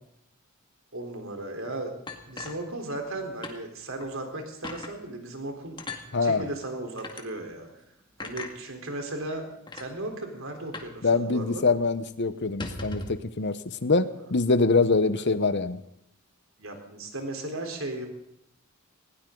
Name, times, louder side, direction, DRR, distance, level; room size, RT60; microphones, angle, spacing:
voice 1, 0.9-1.9 2.3-5.8 6.0-7.8 8.2-9.4 9.7-11.7 14.2-14.3 15.2-15.3 16.6-18.1, right 2 dB, 65° right, 4 dB, 4.0 m, -36 dB
sound 1, 2.1-3.1 3.4-3.6 4.0-4.1 4.6-4.9 5.8-6.0 7.0-7.2 8.2-8.5 9.3-9.4 9.7-9.9 10.7-11.0 11.2-11.3 11.7-11.9 12.4-13.2, left 2 dB, 20° left, 2.1 m, -38 dB
voice 2, 11.0-15.8, left 3 dB, 55° left, 13 dB, 1.0 m, -24 dB
20.0 x 17.0 x 3.9 m, 0.80 s
head